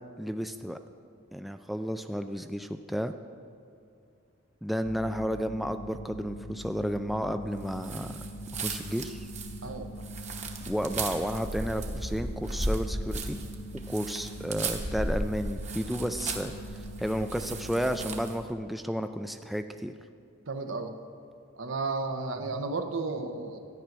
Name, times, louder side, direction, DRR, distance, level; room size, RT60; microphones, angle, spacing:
voice 1, 0.2-0.8 1.3-3.1 4.6-8.2 8.5-9.3 10.7-13.4 13.9-19.9, equal, ahead, 8 dB, 0.3 m, -32 dB
sound 1, 4.8-18.2, equal, 65° left, 1.0 m, -42 dB
sound 2, 7.8-18.4, right 2 dB, 35° right, 1.1 m, -36 dB
voice 2, 20.5-21.0 21.6-23.6, right 3 dB, 75° right, 6 dB, 1.0 m, -33 dB
13.5 x 9.3 x 6.0 m, 2.4 s
head